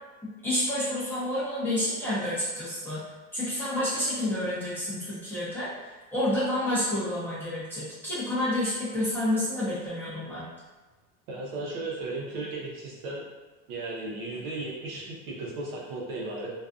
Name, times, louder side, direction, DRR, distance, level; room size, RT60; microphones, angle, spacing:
voice 1, 0.4-3.0 3.3-5.7 6.1-10.5, left 1 dB, 5° left, -12 dB, 0.7 m, -29 dB
voice 2, 11.3-13.2 13.7-16.5, right 2 dB, 65° right, -4 dB, 0.9 m, -35 dB
2.5 x 2.3 x 2.4 m, 1.3 s
supercardioid pair, 145°, 43 cm